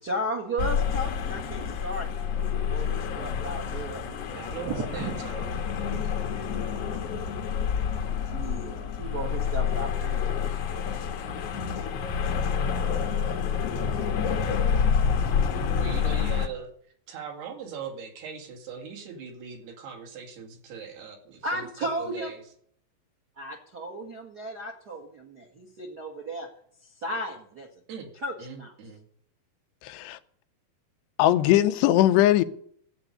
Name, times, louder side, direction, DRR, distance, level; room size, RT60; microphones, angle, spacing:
voice 1, 0.0-4.4 4.6-5.2 5.9-7.0 8.3-10.4 21.4-22.3 23.4-26.5 27.0-27.7 28.2-28.7, right 1 dB, 50° right, 1.1 m, -35 dB
sound 1, 0.6-16.5, left 7 dB, 70° left, 1.4 m, -28 dB
voice 2, 4.4-5.6 15.8-16.7 17.1-22.4 27.9-28.1 28.4-29.0, right 6 dB, 70° right, 4.1 m, -40 dB
voice 3, 29.8-30.2 31.2-32.4, left 13 dB, 90° left, 3.0 m, -20 dB
13.5 x 8.1 x 9.8 m
omnidirectional pair, 4.8 m